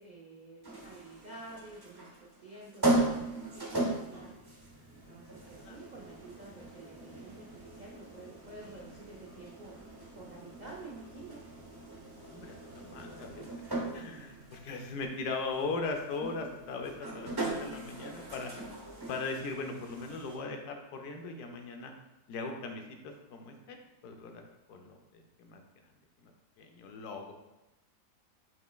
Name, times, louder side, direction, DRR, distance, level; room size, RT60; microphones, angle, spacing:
voice 1, 0.0-4.4 4.9-11.5 17.6-17.8, right 2 dB, 90° right, -4 dB, 0.3 m, -50 dB
sound 1, 0.6-20.4, right 2 dB, 25° right, 0.5 m, -38 dB
voice 2, 12.1-13.5 13.9-18.5 19.1-21.9 22.3-23.8 24.0-24.4 24.7-25.6 26.2-26.3 26.6-27.4, left 3 dB, 80° left, 4 dB, 1.2 m, -39 dB
7.7 x 3.0 x 2.3 m, 0.97 s
omnidirectional pair, 1.7 m